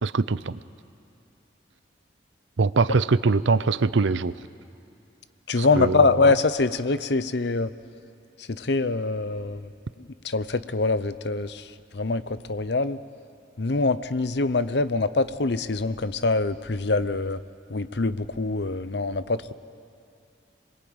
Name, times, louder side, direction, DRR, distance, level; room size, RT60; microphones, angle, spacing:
voice 1, 0.0-0.6 2.6-4.3 5.6-6.1, right 4 dB, 85° right, 17 dB, 0.6 m, -22 dB
voice 2, 5.5-7.7 8.5-9.7 10.2-11.6 11.9-13.0 13.6-17.4 17.7-19.5, left 3 dB, 65° left, 14 dB, 0.8 m, -24 dB
27.0 x 22.0 x 8.8 m, 2.5 s
head